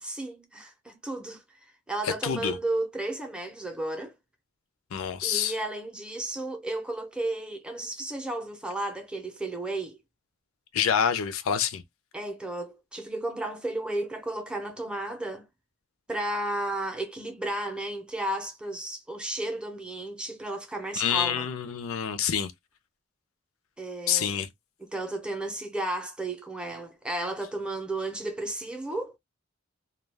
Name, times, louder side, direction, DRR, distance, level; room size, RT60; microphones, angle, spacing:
voice 1, 0.0-1.4 1.9-4.1 5.2-10.0 12.1-15.5 16.1-21.5 23.8-24.4 24.8-29.2, right 1 dB, 5° right, 0.5 m, -33 dB
voice 2, 2.0-2.6 4.9-5.6 10.7-11.8 21.0-22.5 24.1-24.5, left 8 dB, 75° left, 0.5 m, -27 dB
2.2 x 2.2 x 3.2 m
head